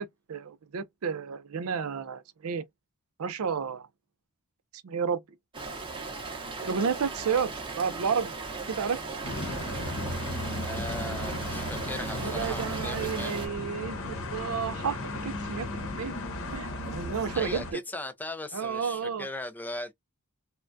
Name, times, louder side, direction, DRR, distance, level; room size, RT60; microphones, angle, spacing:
voice 1, 0.0-2.6 3.2-3.9 4.7-5.2 6.6-8.3 8.7-9.0 12.2-16.1 16.5-17.8 18.5-19.3, right 6 dB, 70° right, 0.5 m, -31 dB
Rain, 5.5-13.5, right 3 dB, 25° right, 0.8 m, -37 dB
sound 1, 9.2-17.7, left 1 dB, 65° left, 0.8 m, -35 dB
voice 2, 10.6-13.4 17.3-19.9, left 2 dB, 10° left, 0.4 m, -38 dB
3.3 x 2.2 x 2.5 m
head